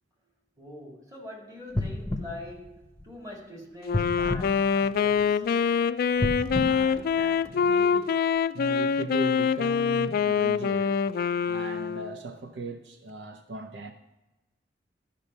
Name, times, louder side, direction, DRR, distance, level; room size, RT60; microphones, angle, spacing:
voice 1, 0.6-5.4, left 1 dB, 20° right, 2.1 m, -44 dB
sound 1, 1.7-3.4 3.9-5.5 6.1-7.8 8.4-8.5, left 1 dB, 10° left, 0.9 m, -33 dB
Wind instrument woodwind instrument, 3.8-12.2, left 6 dB, 55° left, 0.3 m, -25 dB
voice 2, 6.5-8.1 8.5-11.0 11.5-13.9, right 2 dB, 70° right, 0.6 m, -38 dB
12.5 x 5.3 x 5.4 m
head